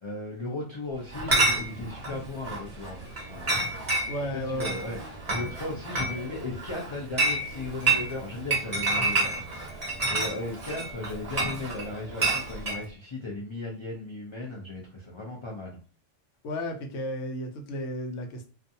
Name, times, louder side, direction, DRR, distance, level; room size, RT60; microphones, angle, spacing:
voice 1, 0.0-3.0 3.3-3.7 4.3-15.8, left 2 dB, 45° left, -3 dB, 0.3 m, -36 dB
Chatter / Chink clink, 1.1-12.8, right 2 dB, 35° right, 0.8 m, -29 dB
voice 2, 4.1-4.8 16.4-18.5, equal, 75° left, 4 dB, 1.0 m, -33 dB
2.5 x 2.3 x 2.6 m, 0.37 s
omnidirectional pair, 1.3 m